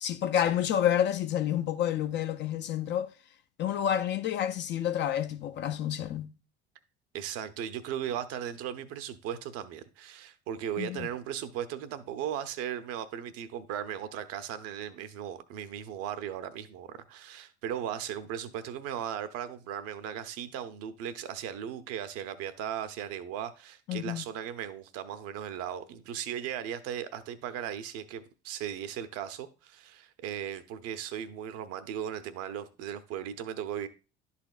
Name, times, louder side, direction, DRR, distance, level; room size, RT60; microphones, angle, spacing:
voice 1, 0.0-3.1 3.6-6.3 10.8-11.1 23.9-24.3, left 10 dB, 35° left, 0.5 m, -29 dB
voice 2, 7.1-33.9, right 9 dB, 45° right, 0.7 m, -37 dB
11.5 x 4.2 x 2.4 m
figure-of-eight pair, 60°, 33 cm